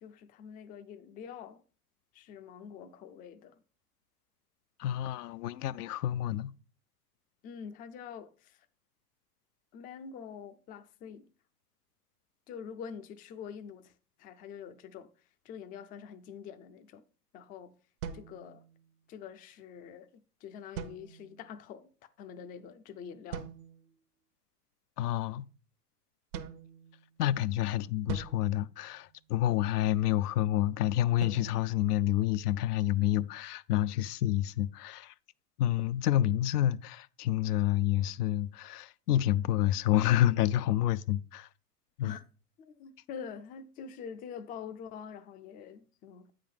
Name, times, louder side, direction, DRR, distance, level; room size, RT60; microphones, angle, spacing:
voice 1, 0.0-1.6 2.1-3.6 7.4-8.7 9.7-11.3 12.5-13.9 14.2-15.1 15.4-17.0 17.3-17.8 18.1-18.6 19.1-21.9 22.2-23.5 42.0-42.2 42.6-46.3, left 7 dB, 20° left, 0.4 m, -45 dB
voice 2, 4.8-6.5 25.0-25.4 27.2-35.1 35.6-41.5 42.0-42.2, left 13 dB, 75° left, 0.5 m, -28 dB
sound 1, 18.0-19.1 20.8-21.6 23.3-24.0 26.3-27.4 28.1-29.6 31.2-32.7, right 8 dB, 65° right, 1.0 m, -44 dB
8.5 x 3.8 x 5.1 m
hypercardioid pair, 100°, 47 cm